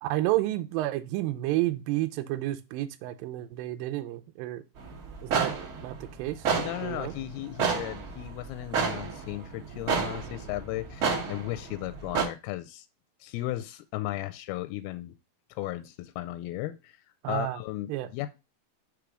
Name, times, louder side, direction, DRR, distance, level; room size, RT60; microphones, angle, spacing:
voice 1, 0.0-4.6 5.2-5.5 5.8-6.5 6.8-7.1 17.2-17.6 17.9-18.1, right 15 dB, 80° right, 8 dB, 2.3 m, -30 dB
sound 1, 4.8-12.2, right 5 dB, 55° right, 1.5 m, -31 dB
voice 2, 6.5-12.9 13.2-15.2 15.5-17.0 17.3-18.3, left 16 dB, 90° left, 11 dB, 2.5 m, -35 dB
6.1 x 3.5 x 4.9 m, 0.26 s
omnidirectional pair, 4.3 m